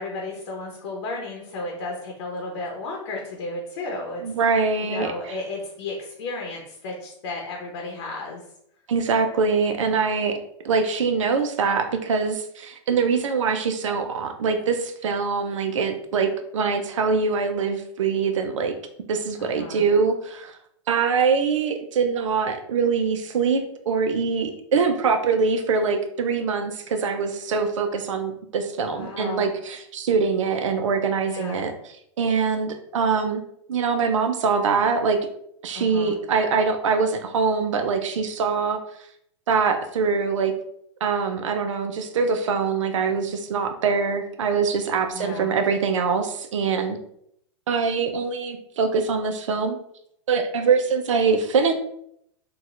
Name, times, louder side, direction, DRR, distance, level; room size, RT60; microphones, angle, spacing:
voice 1, 0.0-4.2 4.8-8.4 19.4-19.8 28.8-29.5 31.3-31.7 35.7-36.2 45.1-45.5, left 2 dB, 60° left, 0 dB, 0.8 m, -33 dB
voice 2, 4.2-5.4 8.9-10.4 10.6-18.7 19.1-20.6 20.9-31.7 32.2-33.4 33.7-35.2 35.6-38.8 39.5-40.5 41.0-47.0 47.7-49.8 50.3-51.7, right 5 dB, 80° right, 6 dB, 0.5 m, -23 dB
4.0 x 2.3 x 2.4 m, 0.71 s
hypercardioid pair, 115°, 16 cm